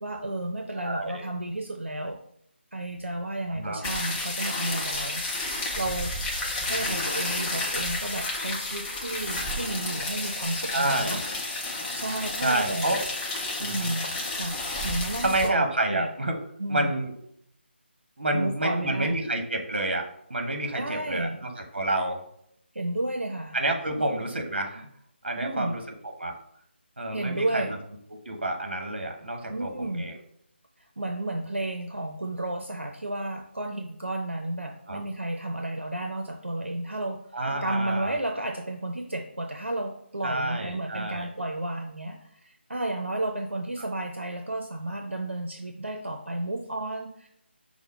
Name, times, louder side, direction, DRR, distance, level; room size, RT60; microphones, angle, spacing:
voice 1, 0.0-2.2 2.7-5.2 5.7-6.1 6.7-11.3 11.9-13.0 13.6-16.1 16.6-16.9 18.3-19.2 20.7-21.4 22.7-23.6 24.0-24.2 25.4-25.7 27.1-27.8 29.5-30.0 30.8-37.2 37.6-47.3, right 1 dB, 80° right, 3 dB, 0.6 m, -32 dB
voice 2, 0.8-1.3 3.5-3.8 6.8-7.0 10.7-11.4 12.4-13.0 13.6-13.9 15.2-16.4 16.7-17.1 18.2-22.2 23.5-24.9 25.2-25.8 26.2-26.3 27.0-27.6 28.2-30.1 34.9-35.0 37.3-38.1 40.2-41.3 43.8-43.9, right 1 dB, 55° right, 3 dB, 1.1 m, -29 dB
sound 1, 3.8-15.5, left 2 dB, 5° left, 0.4 m, -31 dB
5.4 x 2.1 x 4.4 m, 0.71 s
figure-of-eight pair, 155°, 6 cm